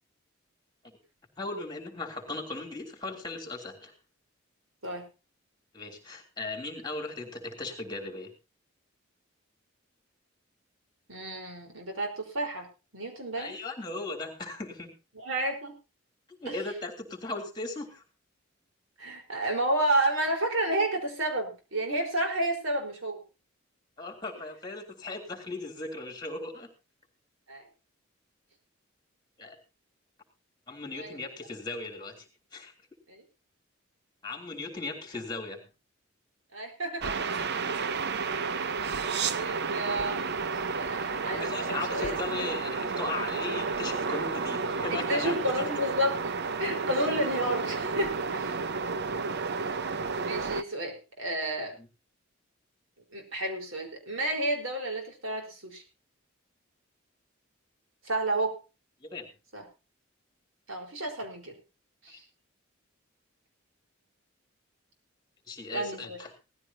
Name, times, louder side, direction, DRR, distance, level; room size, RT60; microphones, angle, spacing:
voice 1, 1.4-3.9 5.7-8.3 13.4-14.9 16.3-18.0 24.0-26.7 29.4-29.6 30.7-32.7 34.2-35.7 41.3-45.7 51.8-51.9 59.0-59.3 62.1-62.2 65.5-66.3, left 2 dB, 20° left, 3 dB, 3.3 m, -37 dB
voice 2, 11.1-12.7 12.9-13.5 15.1-15.7 16.5-16.6 19.0-23.2 27.5-27.7 30.9-31.2 33.1-33.2 36.5-37.5 39.3-42.2 44.9-48.5 50.2-51.7 53.1-55.8 58.0-58.6 59.5-59.7 60.7-61.6 62.0-62.2 65.7-66.2, right 1 dB, 80° right, 3 dB, 4.5 m, -31 dB
sound 1, 37.0-50.6, right 5 dB, 55° right, 0.6 m, -31 dB
18.0 x 14.0 x 2.9 m, 0.29 s
head